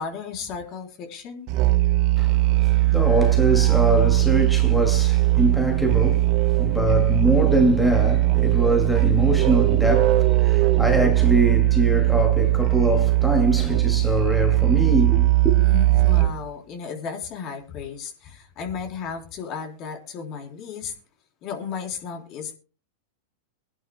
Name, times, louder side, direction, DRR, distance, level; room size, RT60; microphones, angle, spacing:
voice 1, 0.0-1.5 15.6-20.9 21.4-22.5, left 6 dB, 45° left, 3.4 m, -34 dB
Musical instrument, 1.5-16.5, right 18 dB, 50° right, 1.0 m, -19 dB
voice 2, 2.2-15.5, right 1 dB, 5° left, 2.3 m, -23 dB
24.0 x 11.0 x 2.2 m
hypercardioid pair, 110°, 0 cm